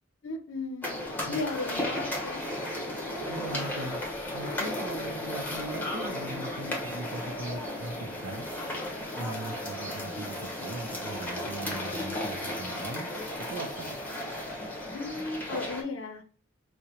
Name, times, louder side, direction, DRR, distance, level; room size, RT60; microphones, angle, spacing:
voice 1, 0.2-1.0 1.3-2.4 14.9-16.2, left 3 dB, 70° left, 5 dB, 0.5 m, -35 dB
sound 1, 0.8-15.8, left 1 dB, 10° left, 0.8 m, -35 dB
voice 2, 3.3-4.0 4.3-8.5 9.2-13.1 13.4-14.0, right 2 dB, 90° right, 1 dB, 0.5 m, -40 dB
4.7 x 2.1 x 2.8 m, 0.40 s
head